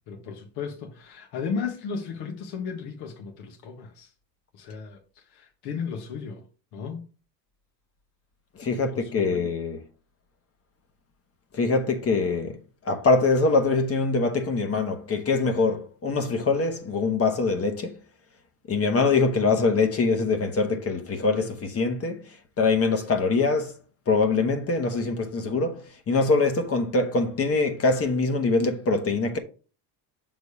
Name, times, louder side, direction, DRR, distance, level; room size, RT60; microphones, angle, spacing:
voice 1, 0.1-4.1 4.5-6.4 6.7-7.0 8.7-9.4, left 5 dB, 65° left, 1.5 m, -35 dB
voice 2, 8.6-9.8 11.5-12.6 12.8-17.9 18.7-22.2 22.6-23.7 24.1-29.4, left 3 dB, 35° left, 1.2 m, -23 dB
6.7 x 3.9 x 4.9 m
cardioid pair, 135°, 42 cm